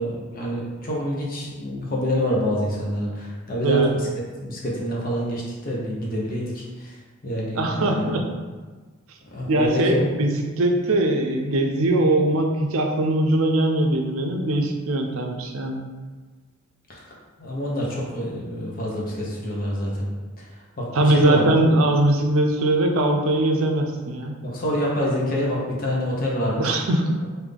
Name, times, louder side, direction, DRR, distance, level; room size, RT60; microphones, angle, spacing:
voice 1, 0.0-4.1 4.4-7.0 7.2-8.2 9.3-10.0 16.9-17.1 17.4-20.1 20.4-20.5 20.8-21.4 24.4-26.7, equal, 40° left, -4 dB, 0.8 m, -27 dB
voice 2, 7.6-8.3 9.5-10.3 10.6-15.8 20.9-24.3 26.6-27.2, right 1 dB, 70° right, 3 dB, 0.5 m, -21 dB
3.7 x 2.7 x 3.4 m, 1.4 s
head